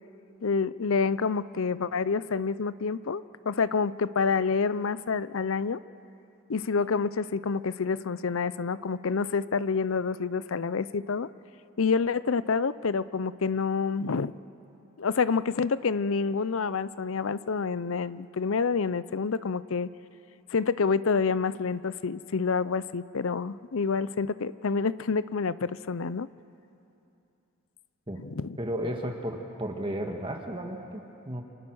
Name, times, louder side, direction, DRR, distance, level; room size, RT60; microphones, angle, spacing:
voice 1, 0.4-5.8 6.5-11.3 11.8-14.3 15.0-19.9 20.5-26.3 28.2-28.6, left 5 dB, 70° left, 17 dB, 0.6 m, -28 dB
voice 2, 28.6-31.4, equal, 25° right, 3 dB, 1.7 m, -33 dB
29.5 x 26.0 x 6.3 m, 2.8 s
head